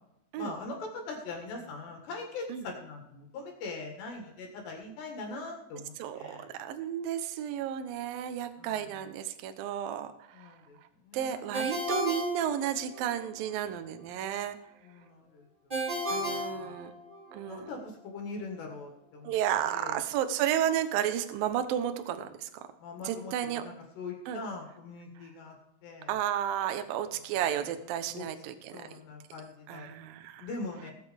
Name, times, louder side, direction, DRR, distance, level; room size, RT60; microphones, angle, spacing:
voice 1, 0.4-6.5 8.6-8.9 10.3-10.8 11.0-11.5 14.8-15.5 16.1-16.7 17.5-19.3 19.6-20.0 22.8-25.6 25.8-26.1 28.1-28.3 28.7-29.9 30.4-30.9, left 3 dB, 65° left, 2 dB, 3.7 m, -42 dB
voice 2, 6.0-10.1 10.4-10.5 11.1-14.6 16.1-16.9 17.3-17.7 19.2-22.5 23.0-23.6 24.3-24.4 26.1-28.7 29.7-30.5, right 10 dB, 90° right, 8 dB, 2.0 m, -32 dB
Ringtone, 11.5-13.2 15.7-17.4, equal, 20° right, 1.5 m, -33 dB
22.0 x 7.7 x 3.5 m, 0.85 s
omnidirectional pair, 5.5 m